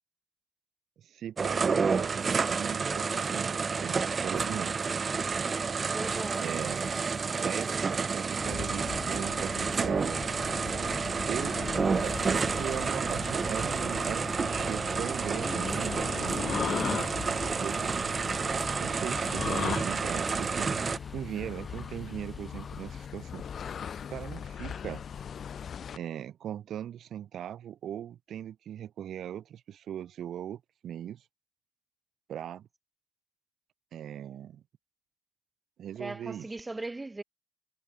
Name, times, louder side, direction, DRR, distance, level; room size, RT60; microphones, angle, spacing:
voice 1, 1.0-4.8 6.4-6.9 7.4-10.2 11.3-11.6 12.0-16.7 17.2-18.0 18.7-20.7 21.1-23.4 24.1-25.0 25.9-31.2 32.3-32.7 33.9-34.6 35.8-36.4, right 10 dB, 70° right, 3.4 m, -39 dB
sound 1, 1.4-21.0, right 5 dB, 35° right, 1.3 m, -30 dB
sound 2, 5.9-23.1, left 2 dB, 15° left, 7.1 m, -51 dB
voice 2, 5.9-6.5 11.1-11.5 17.4-17.8 36.0-37.2, right 2 dB, 20° right, 3.7 m, -39 dB
sound 3, 8.4-26.0, left 7 dB, 55° left, 4.8 m, -38 dB
cardioid pair, 90°, 0 cm